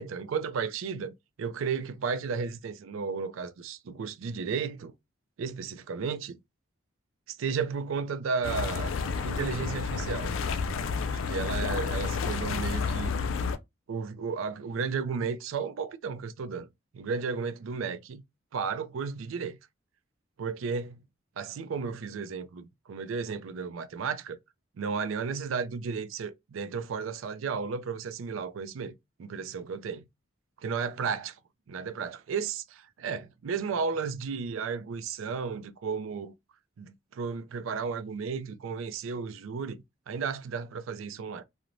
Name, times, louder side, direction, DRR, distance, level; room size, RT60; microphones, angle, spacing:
voice 1, 0.0-4.9 5.4-6.4 7.3-8.9 9.2-10.4 11.1-13.2 13.9-16.7 16.9-18.2 18.5-19.6 20.4-21.0 21.4-24.4 24.8-28.9 29.2-30.1 30.6-31.4 31.7-36.3 36.8-41.4, right 5 dB, 90° right, 0.4 m, -33 dB
sound 1, 8.4-13.6, left 5 dB, 80° left, 0.3 m, -30 dB
2.5 x 2.0 x 3.0 m
head